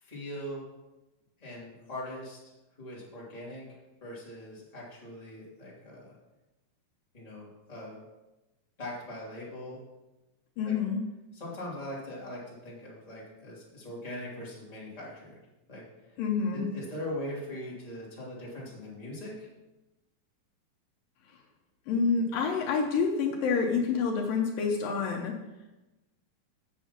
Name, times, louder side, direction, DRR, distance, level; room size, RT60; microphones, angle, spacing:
voice 1, 0.0-0.6 1.4-2.4 2.8-3.6 4.0-6.1 7.1-8.0 8.8-9.8 10.6-10.7 11.3-15.3 15.7-15.8 16.5-19.5, left 1 dB, 10° left, -6 dB, 2.5 m, -41 dB
voice 2, 10.6-11.0 16.2-16.7 21.9-25.4, left 5 dB, 75° left, 1 dB, 2.6 m, -28 dB
7.7 x 7.2 x 5.9 m, 1.0 s
omnidirectional pair, 4.1 m